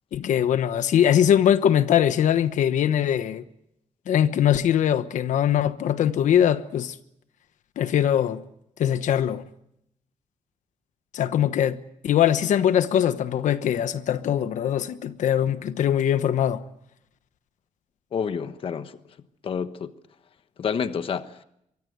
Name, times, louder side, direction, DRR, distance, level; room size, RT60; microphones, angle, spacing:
voice 1, 0.1-3.4 4.1-6.9 7.8-8.4 8.8-9.4 11.1-16.6, left 10 dB, 85° left, 1.2 m, -22 dB
voice 2, 18.1-18.9 19.4-19.9 20.6-21.4, left 6 dB, 45° left, 1.2 m, -29 dB
24.5 x 23.5 x 8.1 m
wide cardioid pair, 165°, 12 cm